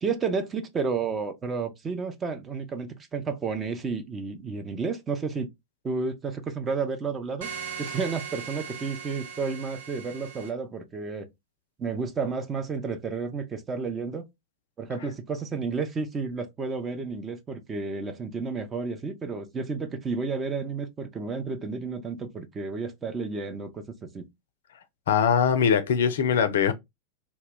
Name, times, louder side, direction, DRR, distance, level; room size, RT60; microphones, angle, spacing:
voice 1, 0.0-5.5 5.8-7.5 7.8-11.3 11.8-14.3 14.8-24.3, right 4 dB, 20° right, 0.5 m, -31 dB
sound 1, 7.4-10.5, right 7 dB, 60° right, 0.7 m, -39 dB
voice 2, 25.1-26.7, left 7 dB, 60° left, 0.4 m, -22 dB
2.1 x 2.1 x 3.4 m
figure-of-eight pair, 90°, 0 cm